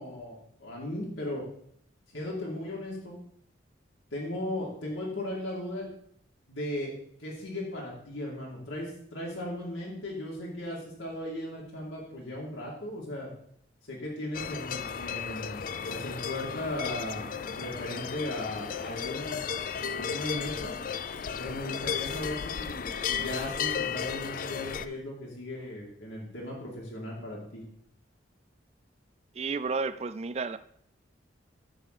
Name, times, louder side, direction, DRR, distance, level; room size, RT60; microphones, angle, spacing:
voice 1, 0.0-1.4 2.1-3.2 4.1-5.9 6.5-6.9 7.2-13.3 13.9-15.6 15.9-19.5 19.9-20.8 21.4-27.6, left 1 dB, 90° left, 2.3 m, -37 dB
sound 1, 14.3-24.9, left 7 dB, 45° left, 0.4 m, -34 dB
voice 2, 29.3-30.6, right 4 dB, 35° right, 0.4 m, -31 dB
10.0 x 3.8 x 6.7 m
head